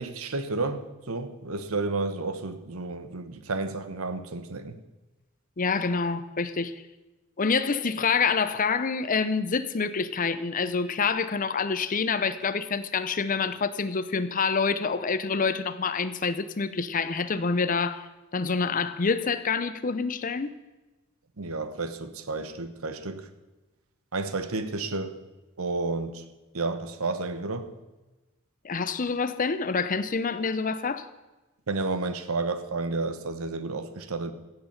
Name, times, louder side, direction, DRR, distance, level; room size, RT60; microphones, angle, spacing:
voice 1, 0.0-4.8 21.4-23.3 24.1-25.2 25.6-26.3 26.5-27.7 31.7-34.3, right 3 dB, 75° right, 1.0 m, -31 dB
voice 2, 5.6-6.8 7.4-20.5 28.6-31.1, left 5 dB, 40° left, 0.6 m, -27 dB
16.0 x 7.9 x 5.9 m
head